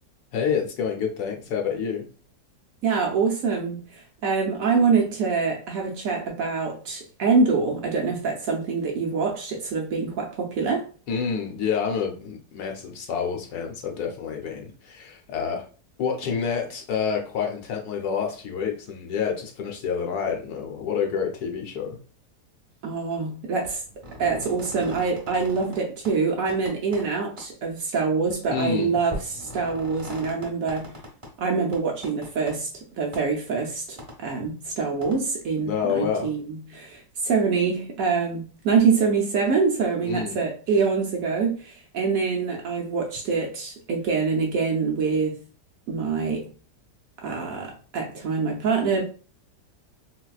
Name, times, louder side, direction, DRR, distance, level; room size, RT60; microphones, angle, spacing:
voice 1, 0.3-2.0 11.1-15.6 16.0-22.0 28.5-28.9 35.6-36.3 40.0-40.4, left 6 dB, 70° left, 1.1 m, -28 dB
voice 2, 2.8-10.9 22.8-23.8 24.2-30.9 31.4-32.7 33.0-45.4 45.9-46.5 47.2-49.0, right 5 dB, 70° right, 0.9 m, -25 dB
sound 1, 23.6-25.8 26.0-26.1 26.5-27.1 27.4-27.5 28.2-28.3 29.1-31.3 31.7-32.5 33.1-33.2 34.0-34.1 35.0-35.2, equal, 25° right, 0.7 m, -39 dB
4.0 x 2.2 x 2.3 m
omnidirectional pair, 1.8 m